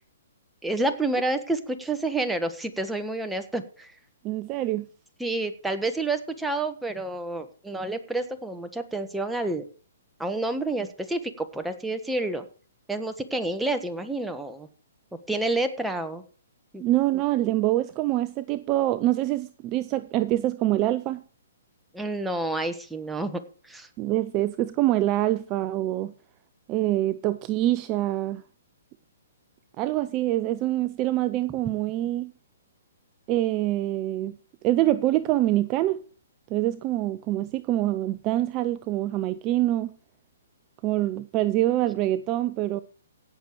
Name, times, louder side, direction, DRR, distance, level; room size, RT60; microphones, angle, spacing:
voice 1, 0.6-3.9 5.2-9.6 10.2-12.4 12.9-14.7 15.3-16.2 16.7-16.8 21.9-23.9, right 2 dB, 5° right, 1.3 m, -29 dB
voice 2, 4.2-4.9 16.8-21.2 24.0-26.1 26.7-28.4 29.8-32.3 33.3-34.3 34.6-36.0 36.5-39.9 40.8-42.8, right 15 dB, 30° right, 0.5 m, -25 dB
17.0 x 6.8 x 4.6 m
hypercardioid pair, 140°, 0 cm